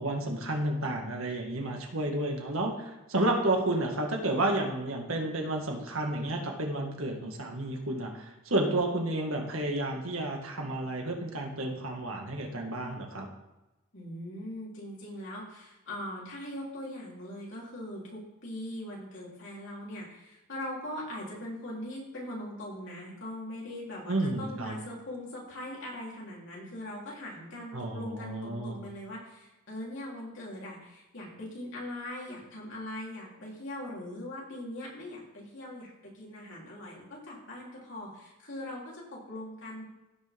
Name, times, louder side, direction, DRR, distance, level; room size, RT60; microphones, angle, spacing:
voice 1, 0.0-13.3 24.1-24.8 27.7-28.8, right 1 dB, 75° right, 1 dB, 1.9 m, -31 dB
voice 2, 13.9-39.8, left 1 dB, 60° left, -4 dB, 3.5 m, -41 dB
15.5 x 6.4 x 3.6 m, 1.0 s
head